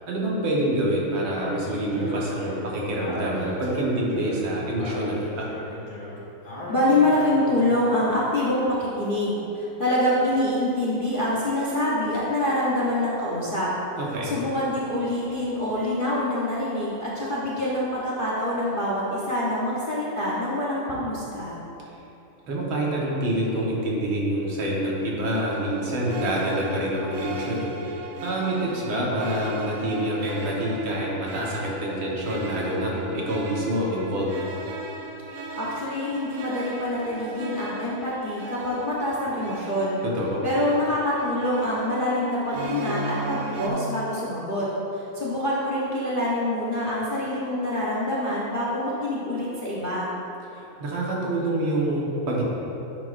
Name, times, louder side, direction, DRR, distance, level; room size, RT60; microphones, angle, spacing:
voice 1, 0.1-5.5 14.0-14.3 22.5-34.4 40.0-40.5 50.5-52.4, right 1 dB, 70° right, -4 dB, 2.1 m, -27 dB
Speech, 1.3-8.0, left 1 dB, 80° left, 2.8 m, -37 dB
voice 2, 6.7-13.7 14.2-21.6 35.6-40.0 40.4-50.1, left 1 dB, 35° left, -7 dB, 0.8 m, -25 dB
sound 1, 25.2-43.7, right 2 dB, 90° right, 0.7 m, -37 dB
10.0 x 7.4 x 2.5 m, 3.0 s
omnidirectional pair, 2.3 m